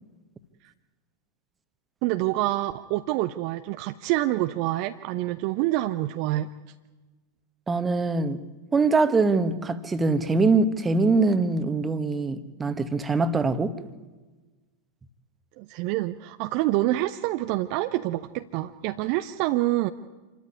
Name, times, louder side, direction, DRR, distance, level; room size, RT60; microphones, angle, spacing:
voice 1, 2.0-6.5 15.6-19.9, right 16 dB, 45° right, 10 dB, 0.7 m, -27 dB
voice 2, 7.7-8.4 8.7-13.7, right 3 dB, 15° right, 11 dB, 1.4 m, -23 dB
27.0 x 14.0 x 9.6 m, 1.3 s
figure-of-eight pair, 90°, 0 cm